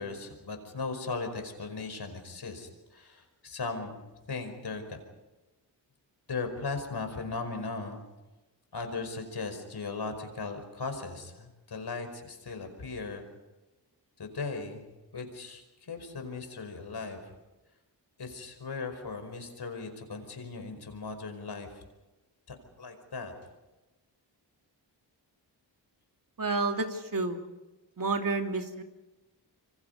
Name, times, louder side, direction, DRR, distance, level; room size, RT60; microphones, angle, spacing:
voice 1, 0.0-5.0 6.3-8.0 8.7-13.3 14.2-14.9 15.1-17.3 18.2-21.8 22.5-23.3, left 4 dB, 65° left, 6 dB, 5.2 m, -38 dB
voice 2, 26.4-27.4 28.0-28.8, right 3 dB, 50° right, 4 dB, 2.8 m, -30 dB
27.0 x 24.5 x 5.5 m, 1.1 s
cardioid pair, 60°, 43 cm